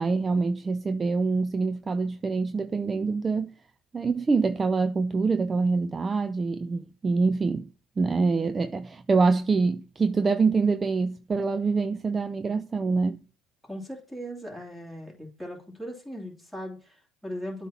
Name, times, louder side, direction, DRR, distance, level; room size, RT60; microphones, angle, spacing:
voice 1, 0.0-3.5 3.9-7.7 8.0-13.2, right 4 dB, 25° right, 0.3 m, -25 dB
voice 2, 13.6-17.7, equal, ahead, 2.8 m, -38 dB
8.0 x 2.9 x 5.7 m
supercardioid pair, 90°, 0 cm